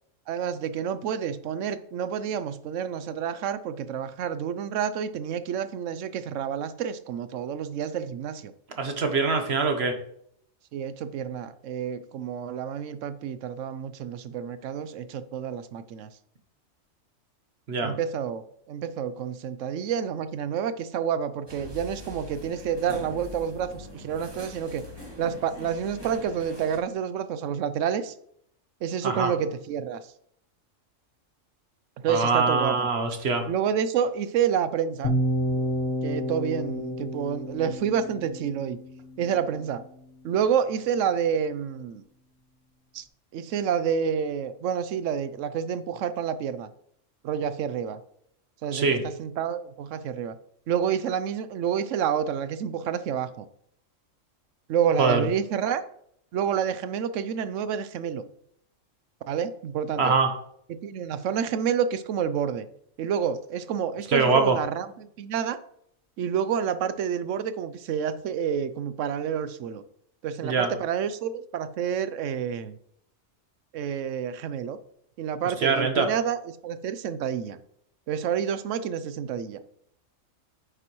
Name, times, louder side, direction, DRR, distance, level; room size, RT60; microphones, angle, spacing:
voice 1, 0.3-8.5 10.7-16.1 17.8-18.4 18.7-24.8 25.2-28.1 28.8-30.0 32.0-32.9 33.5-35.1 36.0-38.8 39.2-39.8 40.2-42.0 42.9-43.0 43.3-46.7 47.2-48.0 48.6-50.4 50.7-53.5 54.7-55.8 56.3-58.2 59.3-60.1 60.7-62.7 63.0-65.6 66.2-69.8 70.2-72.8 73.7-74.8 75.2-77.6 78.1-79.6, right 8 dB, 75° right, 13 dB, 0.9 m, -29 dB
voice 2, 8.8-9.9 17.7-17.9 29.0-29.3 32.1-33.4 48.7-49.0 55.0-55.3 60.0-60.3 64.1-64.6 70.4-70.7 75.6-76.1, right 4 dB, 55° right, 6 dB, 1.2 m, -23 dB
sound 1, 21.5-26.8, left 1 dB, 20° right, 1.9 m, -43 dB
sound 2, 35.0-39.1, equal, 40° left, 1.4 m, -29 dB
8.9 x 6.7 x 3.1 m, 0.70 s
omnidirectional pair, 1.4 m